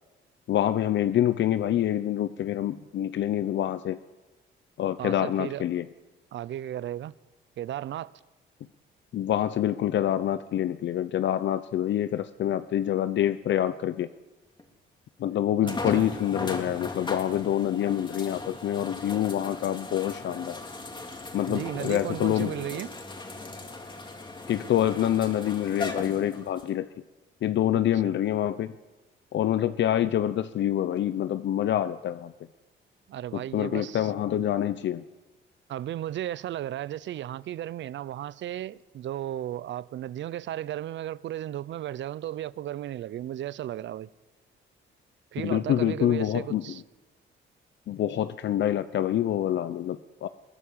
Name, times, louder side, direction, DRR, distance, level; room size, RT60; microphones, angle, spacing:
voice 1, 0.5-4.0 4.8-5.8 9.1-14.1 15.2-20.6 21.3-22.5 24.5-26.9 27.4-28.8 29.3-32.3 33.5-35.0 45.4-46.8 47.9-50.3, left 11 dB, 65° left, 0.8 m, -26 dB
voice 2, 5.0-5.6 6.3-7.1 7.6-8.1 15.6-16.1 21.5-22.9 27.7-28.1 33.1-34.1 35.7-44.1 45.3-46.8, right 12 dB, 65° right, 0.7 m, -35 dB
sound 1, 14.6-14.7 15.7-26.7 27.4-27.5 31.0-31.1, left 2 dB, 25° left, 3.6 m, -38 dB
22.0 x 17.0 x 8.7 m
cardioid pair, 90°, 20 cm